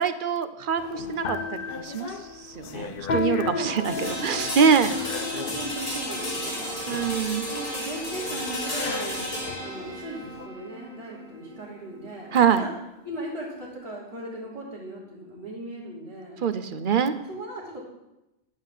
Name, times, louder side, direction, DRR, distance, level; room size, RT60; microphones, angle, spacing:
voice 1, 0.0-4.9 6.9-7.5 12.3-12.6 16.4-17.1, right 6 dB, 55° right, 11 dB, 0.8 m, -24 dB
sound 1, 0.8-10.5, left 5 dB, 60° left, 0.9 m, -35 dB
voice 2, 3.2-4.3 4.6-7.1 7.5-9.2 9.6-12.7 13.0-16.4 17.2-17.8, right 1 dB, 35° right, -13 dB, 3.3 m, -37 dB
sound 2, 3.8-13.7, equal, 45° left, 3.9 m, -34 dB
11.0 x 5.5 x 7.2 m, 0.92 s
omnidirectional pair, 1.1 m